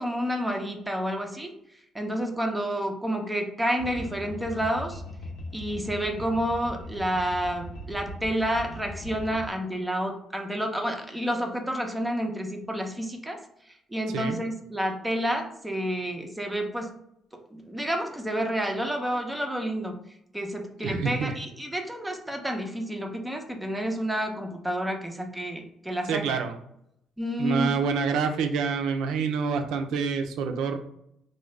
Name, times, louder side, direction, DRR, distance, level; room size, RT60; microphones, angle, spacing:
voice 1, 0.0-1.5 1.9-5.0 5.5-13.4 13.9-16.9 17.5-20.0 20.3-26.3 27.2-27.7, equal, 5° right, 3 dB, 0.5 m, -29 dB
sound 1, 3.8-9.5, equal, 65° left, 0.7 m, -40 dB
voice 2, 14.1-14.4 20.8-21.4 26.1-26.5 27.4-30.8, right 5 dB, 80° right, 6 dB, 0.5 m, -27 dB
3.7 x 2.2 x 3.2 m, 0.75 s
cardioid pair, 150°, 0 cm